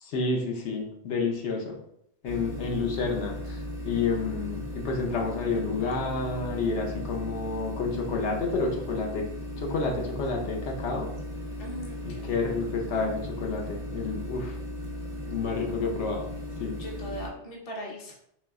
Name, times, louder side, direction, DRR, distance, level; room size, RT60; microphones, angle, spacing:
voice 1, 0.0-1.8 2.2-9.3 9.6-11.1 12.1-14.6 15.2-16.3 16.6-16.8, left 4 dB, 80° left, 1 dB, 1.0 m, -30 dB
sound 1, 2.2-17.3, equal, 45° right, 0.5 m, -37 dB
voice 2, 11.6-12.4 16.8-18.2, equal, 35° left, -1 dB, 0.7 m, -39 dB
3.1 x 2.7 x 3.4 m, 0.73 s
omnidirectional pair, 1.2 m